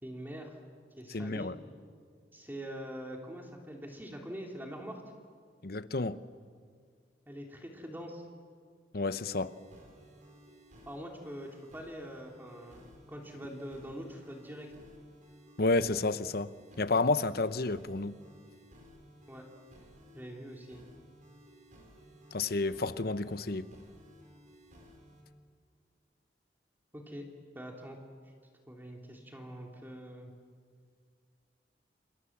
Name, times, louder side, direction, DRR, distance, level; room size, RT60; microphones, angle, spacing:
voice 1, 0.0-0.6 1.0-1.5 2.3-5.0 7.3-8.2 10.9-14.7 19.3-19.5 20.1-20.8 26.9-27.3 27.5-28.0 28.7-30.3, equal, 10° right, 2.9 m, -44 dB
voice 2, 1.1-1.6 5.6-6.2 8.9-9.5 15.6-16.5 16.8-18.1 22.3-23.7, left 3 dB, 60° left, 0.9 m, -30 dB
sound 1, 9.2-25.2, equal, 45° right, 6.6 m, -57 dB
29.0 x 27.5 x 7.3 m
head